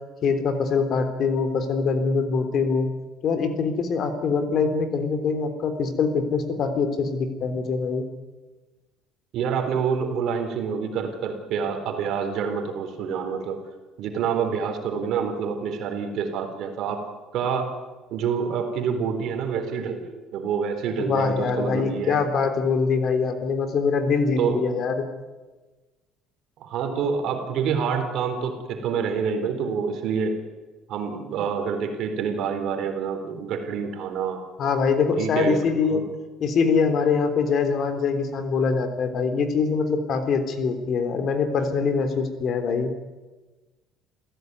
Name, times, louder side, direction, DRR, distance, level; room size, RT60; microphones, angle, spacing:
voice 1, 0.2-2.9 3.2-8.0 21.0-24.9 34.6-36.1 36.4-42.9, left 5 dB, 45° left, 7 dB, 3.5 m, -23 dB
voice 2, 9.3-13.6 14.0-17.0 17.3-17.7 18.1-22.2 24.4-24.6 26.6-30.3 30.9-34.4 35.2-35.6 35.9-36.0, right 6 dB, 60° right, 5 dB, 3.9 m, -27 dB
28.0 x 16.0 x 9.5 m, 1.2 s
cardioid pair, 145°, 0 cm